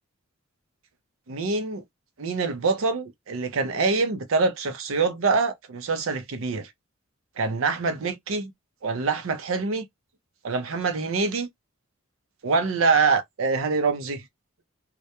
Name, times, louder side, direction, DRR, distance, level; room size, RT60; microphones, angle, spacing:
voice 1, 1.3-1.8 2.2-6.7 7.4-8.5 8.8-9.9 10.4-11.5 12.4-14.2, right 4 dB, 65° right, 0.5 m, -25 dB
2.2 x 2.1 x 2.7 m
head